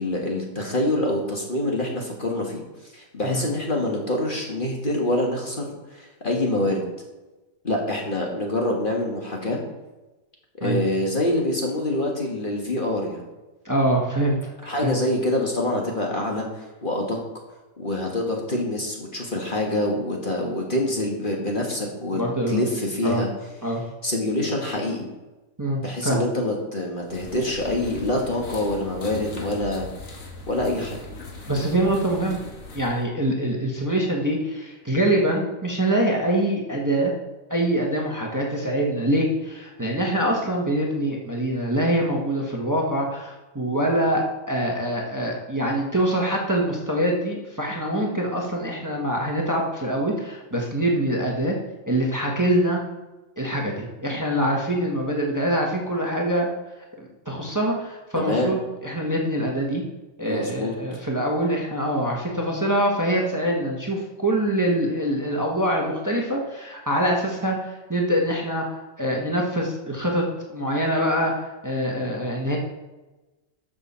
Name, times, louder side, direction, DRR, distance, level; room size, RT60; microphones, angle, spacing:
voice 1, 0.0-2.6 2.9-6.8 7.6-9.6 10.6-13.2 14.6-17.2 17.8-22.2 22.5-23.3 24.0-25.1 25.8-29.9 30.5-31.0 58.1-58.5 60.2-60.7, left 1 dB, 40° left, 0 dB, 1.7 m, -26 dB
voice 2, 13.6-14.5 14.8-14.9 22.1-22.6 23.0-23.2 23.6-23.8 25.6-26.2 31.5-32.4 32.7-37.1 37.5-51.5 51.9-52.8 53.4-56.5 57.0-59.8 60.2-72.6, right 1 dB, 15° right, -1 dB, 1.4 m, -24 dB
sound 1, 27.1-33.0, left 3 dB, 75° left, 1.8 m, -39 dB
13.0 x 6.6 x 4.4 m, 1.1 s
omnidirectional pair, 1.4 m